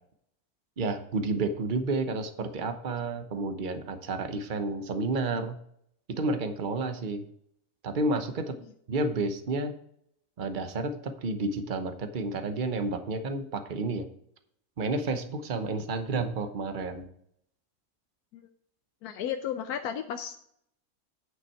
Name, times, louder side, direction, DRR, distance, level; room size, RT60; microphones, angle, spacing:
voice 1, 0.8-5.6 6.1-7.3 7.8-8.5 8.9-9.7 10.4-14.1 14.8-17.1, right 3 dB, 40° right, 8 dB, 0.9 m, -30 dB
voice 2, 19.0-20.4, left 9 dB, 90° left, 7 dB, 1.2 m, -34 dB
9.7 x 5.9 x 4.5 m, 0.71 s
omnidirectional pair, 1.6 m